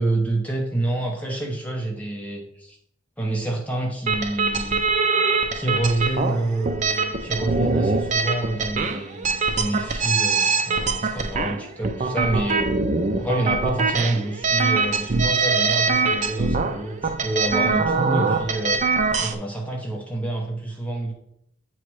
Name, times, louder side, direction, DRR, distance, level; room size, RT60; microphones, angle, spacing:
voice 1, 0.0-2.8 3.2-4.8 5.5-12.7 13.2-18.8 19.2-21.1, right 2 dB, 5° left, 0 dB, 0.8 m, -27 dB
sound 1, 4.1-19.4, right 4 dB, 35° right, 0.5 m, -23 dB
8.8 x 3.1 x 4.7 m, 0.75 s
head